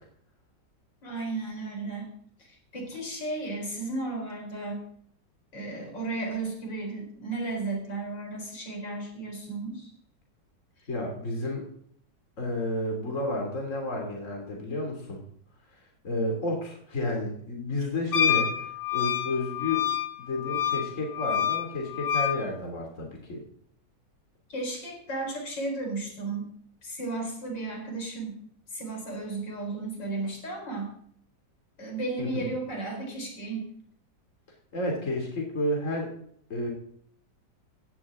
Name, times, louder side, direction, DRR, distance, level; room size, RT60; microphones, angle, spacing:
voice 1, 1.0-2.1 2.7-4.8 5.5-9.9 24.5-26.5 26.8-28.4 28.7-30.9 31.8-33.7, right 2 dB, 85° left, 1 dB, 5.2 m, -34 dB
voice 2, 10.9-11.7 12.4-15.2 15.7-15.8 16.0-19.9 20.2-23.4 32.2-32.5 34.7-36.1 36.5-36.7, left 2 dB, 45° left, 0 dB, 3.3 m, -31 dB
Wind instrument woodwind instrument, 18.1-22.4, left 9 dB, 70° left, 2.3 m, -27 dB
17.0 x 16.0 x 3.8 m, 0.64 s
omnidirectional pair, 1.9 m